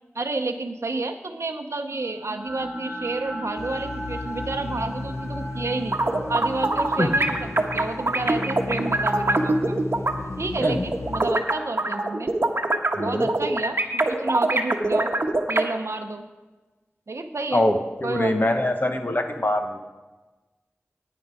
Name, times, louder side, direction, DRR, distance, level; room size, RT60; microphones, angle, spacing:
voice 1, 0.1-6.0 6.3-9.8 10.4-12.3 13.0-13.8 14.1-15.1 15.5-16.3 17.1-17.7 18.0-18.5, right 3 dB, 85° right, 6 dB, 0.7 m, -30 dB
sound 1, 1.9-12.1, equal, 20° right, 2.6 m, -38 dB
sound 2, 3.6-11.3, left 2 dB, 80° left, 0.6 m, -35 dB
sound 3, 5.8-10.1 10.6-15.6, right 2 dB, 55° right, 1.0 m, -23 dB
voice 2, 13.0-13.3 17.5-19.8, left 1 dB, 45° left, 5 dB, 0.9 m, -23 dB
9.6 x 9.1 x 5.5 m, 1.2 s
wide cardioid pair, 55°, 5 cm